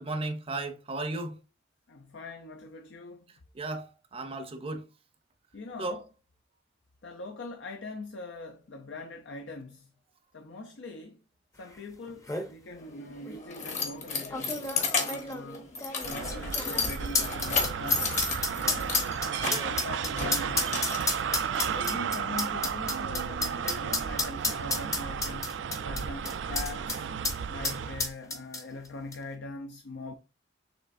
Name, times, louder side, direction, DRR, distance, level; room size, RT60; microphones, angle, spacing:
voice 1, 0.0-1.3 3.5-4.9 5.8-6.0 19.5-19.7, right 2 dB, 30° right, 0.6 m, -35 dB
voice 2, 1.9-3.3 5.5-6.0 7.0-9.9 10.3-11.2 11.6-15.7 16.0-18.2 18.6-18.9 19.4-21.0 21.5-25.6 25.8-27.1 27.5-30.1, left 2 dB, 75° left, 0.5 m, -42 dB
sound 1, 11.7-11.8 12.1-12.5 13.3-13.4 14.3-27.0 27.2-27.4 27.6-28.9 29.1-29.2, left 3 dB, 20° left, 0.6 m, -32 dB
Keys jangling, 12.8-21.9, left 4 dB, 40° left, 1.1 m, -33 dB
sound 2, 16.0-28.1, right 7 dB, 75° right, 0.4 m, -33 dB
6.7 x 3.1 x 2.5 m
head